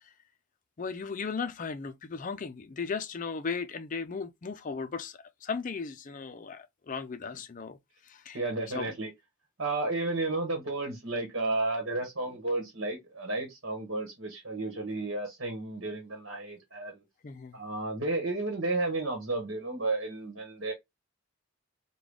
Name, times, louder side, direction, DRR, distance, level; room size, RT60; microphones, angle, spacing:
voice 1, 0.8-7.8 8.0-8.4 8.7-8.9 17.2-17.6, left 5 dB, 35° left, 0.4 m, -36 dB
voice 2, 8.3-9.1 9.6-17.0 17.5-20.7, right 2 dB, 60° right, 1.3 m, -32 dB
3.7 x 2.3 x 3.3 m
head